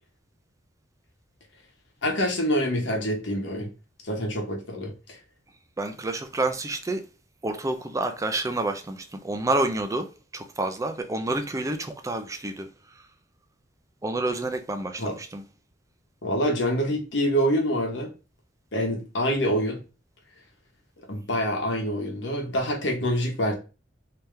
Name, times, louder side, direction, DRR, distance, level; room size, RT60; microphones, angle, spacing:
voice 1, 2.0-3.7 4.0-4.9 15.0-15.2 16.2-18.1 18.7-19.8 21.1-23.5, equal, 80° left, 1.1 m, -26 dB
voice 2, 5.8-7.0 7.4-10.1 10.3-12.7 14.0-15.4, right 2 dB, 20° right, 0.4 m, -28 dB
3.5 x 2.8 x 3.2 m
head